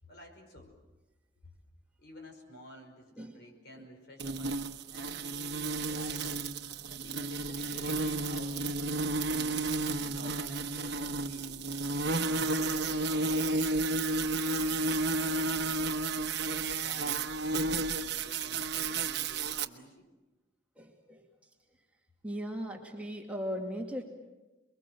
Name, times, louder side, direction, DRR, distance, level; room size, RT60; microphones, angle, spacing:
voice 1, 0.0-0.7 1.4-1.5 2.0-6.4 6.9-9.7 10.1-11.6 12.6-13.9 14.4-15.7 16.2-20.1, equal, 55° left, 3 dB, 5.4 m, -52 dB
sound 1, 4.2-19.7, right 3 dB, 60° right, 1.1 m, -32 dB
voice 2, 20.8-21.3 22.2-24.0, equal, 5° right, 0 dB, 2.4 m, -38 dB
29.0 x 22.5 x 7.8 m, 1.1 s
head